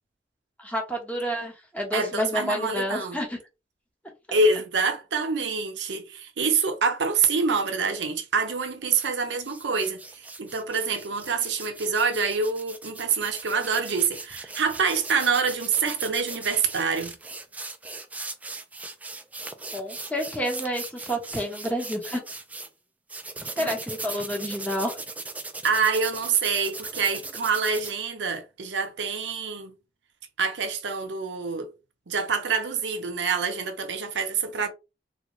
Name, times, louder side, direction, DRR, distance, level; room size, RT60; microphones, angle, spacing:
voice 1, 0.6-3.4 19.7-22.2 23.4-25.0, equal, 10° left, 1.0 m, -29 dB
voice 2, 1.9-3.2 4.3-17.2 23.6-23.7 25.6-29.7 30.4-31.7 32.1-34.7, right 4 dB, 85° right, 0.7 m, -26 dB
sound 1, 8.8-9.1 9.4-22.7 23.1-27.9, right 3 dB, 10° right, 0.3 m, -39 dB
3.5 x 2.2 x 3.0 m
head